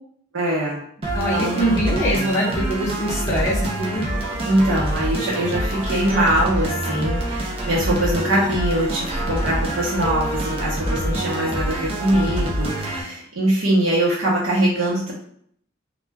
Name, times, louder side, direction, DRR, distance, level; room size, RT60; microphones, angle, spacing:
voice 1, 0.3-0.8 1.3-1.7 4.5-15.1, right 1 dB, 80° right, -5 dB, 0.7 m, -22 dB
sound 1, 1.0-13.0, right 1 dB, 30° right, 0.4 m, -26 dB
voice 2, 1.1-4.1, equal, 15° left, -6 dB, 0.6 m, -23 dB
2.1 x 2.1 x 3.3 m, 0.64 s
head